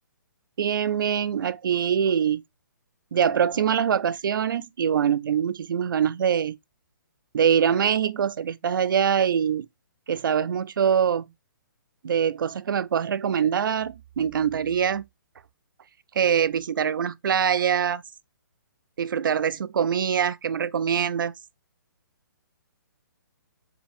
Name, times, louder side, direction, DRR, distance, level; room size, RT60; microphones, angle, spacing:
voice 1, 0.6-2.4 3.1-6.6 7.3-9.7 10.1-11.3 12.0-15.0 16.2-18.0 19.0-21.3, right 8 dB, 75° right, 0.4 m, -24 dB
4.7 x 3.4 x 2.5 m
hypercardioid pair, 170°, 11 cm